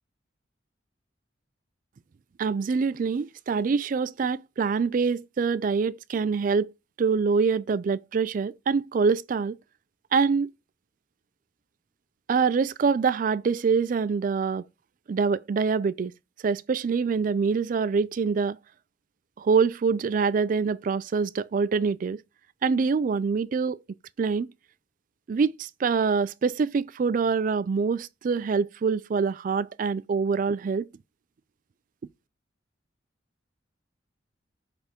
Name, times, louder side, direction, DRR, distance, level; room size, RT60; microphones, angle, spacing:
voice 1, 2.4-6.7 7.0-9.6 10.1-10.5 12.3-14.6 15.1-16.1 16.4-18.6 19.4-22.2 22.6-23.8 24.2-24.5 25.3-30.9, right 5 dB, 45° right, 0.3 m, -25 dB
8.3 x 3.5 x 5.1 m
head